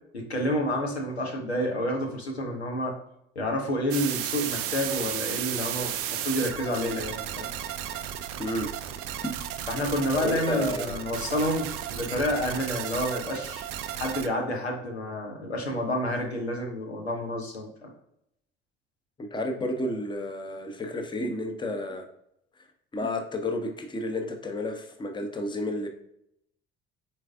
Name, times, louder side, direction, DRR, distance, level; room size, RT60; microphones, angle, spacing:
voice 1, 0.1-3.0 3.4-7.5 9.7-13.6 13.9-17.9, equal, 85° left, 1 dB, 0.7 m, -29 dB
sound 1, 3.9-14.3, right 10 dB, 45° right, 0.5 m, -34 dB
voice 2, 8.4-8.7 9.2-9.4 10.2-11.1 19.2-22.1 22.6-22.7 22.9-25.9, left 1 dB, 15° left, 4 dB, 0.7 m, -31 dB
4.5 x 4.0 x 2.3 m, 0.77 s
figure-of-eight pair, 50°, 31 cm